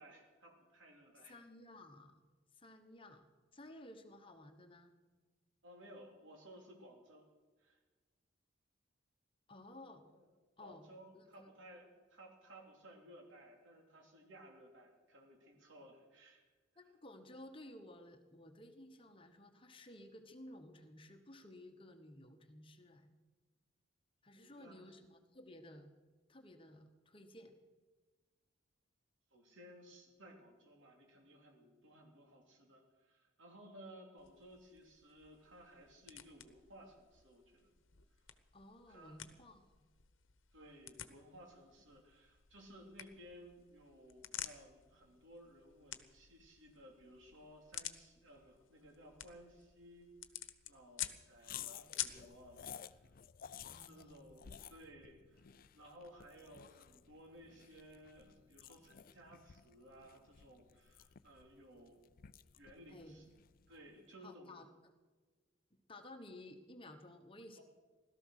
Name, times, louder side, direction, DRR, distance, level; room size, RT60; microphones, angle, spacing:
voice 1, 0.0-1.4 5.6-7.2 7.6-7.8 10.1-10.3 10.6-16.5 24.3-24.9 29.3-37.7 38.9-39.2 40.5-50.1 50.7-53.1 53.7-55.5 55.7-62.1 62.5-63.3 63.7-64.6 67.5-67.6, equal, 75° right, 1 dB, 3.2 m, -58 dB
voice 2, 1.3-2.3 2.6-3.2 3.5-4.9 9.5-10.0 10.6-10.9 11.1-11.5 16.8-23.1 24.2-25.9 26.3-27.5 38.5-39.8 53.7-54.3 62.9-63.2 64.2-64.9 65.9-67.6, left 1 dB, 25° left, 6 dB, 1.2 m, -55 dB
sound 1, 34.2-52.3, left 12 dB, 85° left, 1.0 m, -51 dB
sound 2, 51.4-63.9, left 9 dB, 45° left, 0.5 m, -55 dB
17.0 x 13.5 x 6.5 m, 1.3 s
head